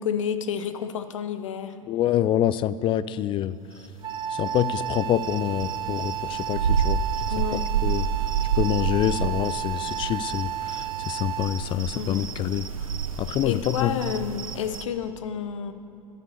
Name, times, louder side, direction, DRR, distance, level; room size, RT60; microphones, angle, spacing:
voice 1, 0.0-1.7 7.3-7.6 11.9-12.3 13.4-15.7, left 8 dB, 65° left, 10 dB, 0.9 m, -30 dB
voice 2, 1.9-3.6 4.3-7.0 7.5-8.1 8.5-12.7 13.2-13.9, left 11 dB, 30° left, 16 dB, 0.4 m, -26 dB
Wind instrument woodwind instrument, 4.0-11.7, right 11 dB, 25° right, 1.0 m, -32 dB
sound 1, 4.1-14.8, right 7 dB, 80° right, 0.7 m, -30 dB
12.5 x 10.5 x 6.8 m, 2.8 s
figure-of-eight pair, 85°, 17 cm